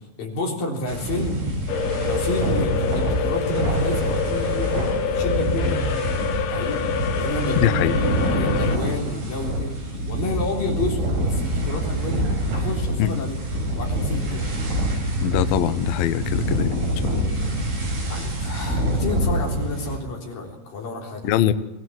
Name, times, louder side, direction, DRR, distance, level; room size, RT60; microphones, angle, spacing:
voice 1, 0.0-1.4 2.0-6.0 6.3-6.8 7.1-9.8 10.1-13.4 13.7-14.5 18.1-21.3, left 1 dB, 45° left, 1 dB, 4.9 m, -30 dB
sound 1, 0.9-20.0, right 1 dB, 50° right, 8.6 m, -26 dB
sound 2, 1.7-8.8, left 7 dB, 70° left, 3.7 m, -26 dB
voice 2, 7.6-8.0 13.0-13.2 15.2-16.8 17.1-17.3 21.2-21.5, left 11 dB, 85° left, 10 dB, 2.1 m, -22 dB
24.0 x 17.5 x 7.8 m, 0.96 s
omnidirectional pair, 5.7 m